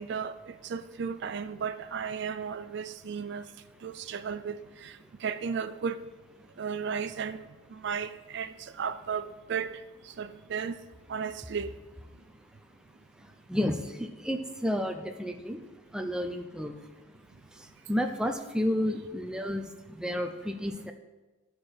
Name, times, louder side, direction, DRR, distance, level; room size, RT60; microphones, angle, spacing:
voice 1, 0.0-3.5 3.8-6.0 6.6-10.8 11.1-11.7, right 6 dB, 60° right, 0.4 m, -35 dB
voice 2, 13.2-15.6 15.9-16.7 17.5-20.9, equal, 5° right, 0.6 m, -31 dB
14.0 x 4.8 x 4.4 m
head